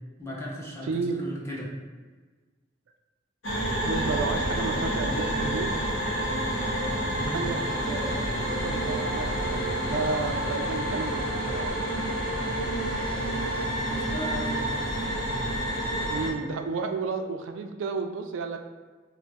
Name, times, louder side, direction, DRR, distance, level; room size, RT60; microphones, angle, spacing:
voice 1, 0.2-1.7 7.0-7.5 13.8-14.7, equal, 15° left, -5 dB, 0.5 m, -37 dB
voice 2, 0.8-1.2 3.9-5.8 7.3-7.6 7.9-11.8 16.1-18.6, right 4 dB, 85° right, 6 dB, 0.3 m, -32 dB
sound 1, 3.4-16.3, right 1 dB, 90° left, 0.8 m, -28 dB
2.3 x 2.3 x 3.9 m, 1.4 s
head